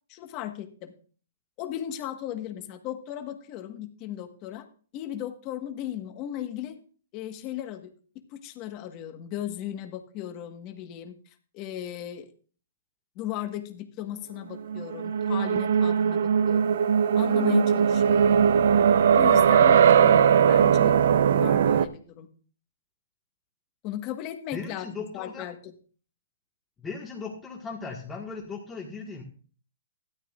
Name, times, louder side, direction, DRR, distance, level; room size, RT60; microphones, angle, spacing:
voice 1, 0.1-0.9 1.6-4.7 4.9-6.8 7.1-7.9 8.3-11.1 11.5-12.3 13.1-16.8 17.1-18.5 19.1-21.0 21.3-22.3 23.8-24.9 25.1-25.7, left 12 dB, 35° left, 7 dB, 1.4 m, -36 dB
sound 1, 14.6-21.9, right 8 dB, 70° right, 0.6 m, -20 dB
voice 2, 24.5-25.5 26.8-29.2, left 4 dB, 15° left, -1 dB, 1.6 m, -37 dB
13.0 x 11.5 x 2.5 m, 0.41 s
hypercardioid pair, 145°, 0 cm